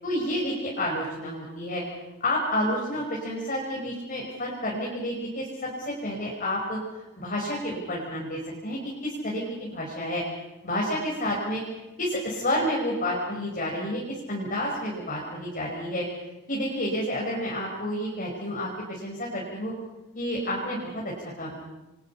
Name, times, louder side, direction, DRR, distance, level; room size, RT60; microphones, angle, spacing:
voice 1, 0.0-1.8 2.2-6.8 7.2-10.2 10.6-11.6 12.0-16.1 16.5-19.7 20.1-21.5, left 1 dB, 40° left, -3 dB, 5.2 m, -30 dB
29.0 x 23.5 x 5.8 m, 1.0 s
head